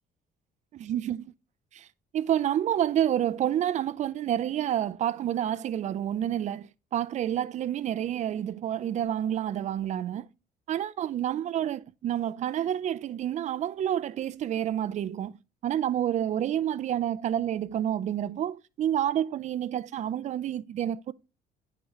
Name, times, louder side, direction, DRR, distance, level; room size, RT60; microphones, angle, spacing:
voice 1, 0.7-1.3 1.7-1.9 2.1-10.3 10.7-15.4 15.6-21.1, right 10 dB, 45° right, 0.4 m, -29 dB
8.8 x 4.8 x 3.0 m
cardioid pair, 110°, 17 cm